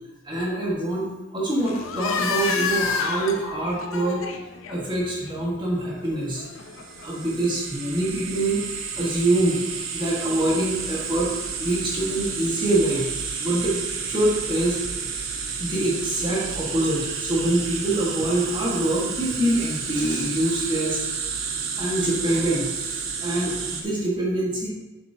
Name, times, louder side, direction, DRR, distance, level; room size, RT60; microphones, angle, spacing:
voice 1, 0.2-4.2 4.7-6.4 7.0-8.6 9.0-9.6 9.9-11.3 11.6-13.0 13.4-13.7 14.1-14.8 15.6-21.0 21.8-24.7, right 1 dB, 25° right, -5 dB, 1.5 m, -25 dB
sound 1, 1.6-7.0, left 5 dB, 80° left, 0.7 m, -30 dB
sound 2, 6.6-23.8, right 5 dB, 70° right, 1.0 m, -31 dB
7.4 x 6.8 x 2.8 m, 1.1 s
head